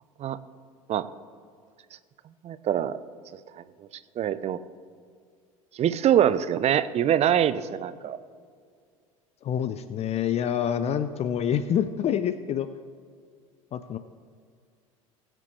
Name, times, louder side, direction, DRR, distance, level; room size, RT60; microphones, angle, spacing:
voice 1, 2.4-3.0 4.2-4.6 5.8-8.2, right 10 dB, 35° right, 14 dB, 0.7 m, -24 dB
voice 2, 9.4-12.7 13.7-14.0, left 9 dB, 35° left, 12 dB, 0.6 m, -27 dB
21.0 x 7.6 x 3.2 m, 2.1 s
hypercardioid pair, 75°, 18 cm